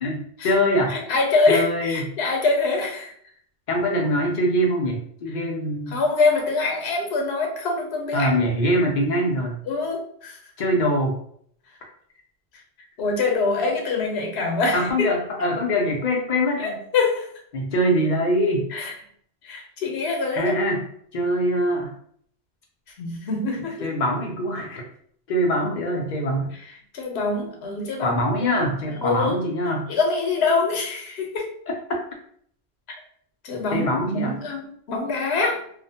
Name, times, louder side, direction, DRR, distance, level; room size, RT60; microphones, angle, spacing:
voice 1, 0.0-1.0 1.5-2.1 3.7-6.0 8.1-9.6 10.6-11.1 14.7-16.8 17.5-18.7 20.4-20.9 21.1-21.9 23.8-24.8 25.3-26.5 28.0-29.9 31.7-32.0 33.7-34.3, equal, 55° left, 0 dB, 0.6 m, -23 dB
voice 2, 0.9-3.1 5.9-8.3 9.7-10.4 13.0-15.1 16.6-17.3 18.7-18.9 19.4-20.5 23.0-23.9 26.9-28.6 28.9-29.5 29.9-31.5 33.4-35.6, left 3 dB, 80° left, 1 dB, 0.9 m, -24 dB
2.4 x 2.0 x 2.7 m, 0.63 s
omnidirectional pair, 1.1 m